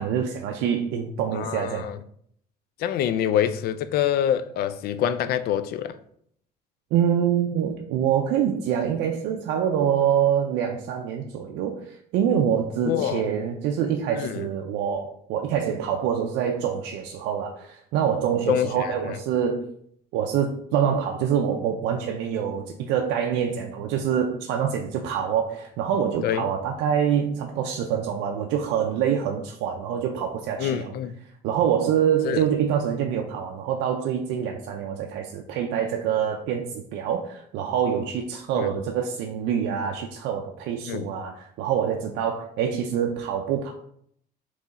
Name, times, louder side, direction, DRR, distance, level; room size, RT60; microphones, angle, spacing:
voice 1, 0.0-1.9 6.9-19.7 20.1-30.9 31.4-43.7, right 8 dB, 90° right, 0.4 m, -25 dB
voice 2, 1.3-2.0 2.8-5.9 12.8-13.2 14.1-14.5 18.5-19.2 26.2-26.5 30.6-31.1 32.2-32.4 38.5-38.7 40.9-41.1, left 10 dB, 65° left, 0.4 m, -26 dB
3.7 x 3.0 x 4.0 m
cardioid pair, 110°, 17 cm